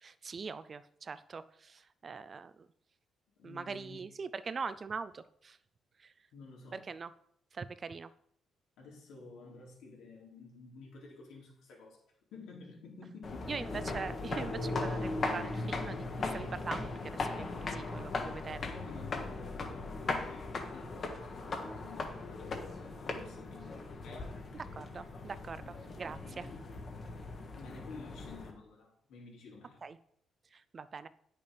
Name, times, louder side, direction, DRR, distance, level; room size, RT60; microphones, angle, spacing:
voice 1, 0.0-2.7 3.4-5.6 6.0-6.1 6.7-7.1 7.5-8.1 13.5-18.7 24.5-26.5 29.8-30.0 30.5-31.1, right 5 dB, 25° right, 14 dB, 0.4 m, -42 dB
voice 2, 3.4-4.1 6.3-6.9 8.8-12.0 12.3-13.6 18.4-24.4 26.2-26.8 27.5-29.8, left 3 dB, 90° left, -2 dB, 3.6 m, -52 dB
sound 1, 13.2-28.5, left 3 dB, 35° left, 1.2 m, -38 dB
9.9 x 6.7 x 5.1 m, 0.68 s
cardioid pair, 175°, 0 cm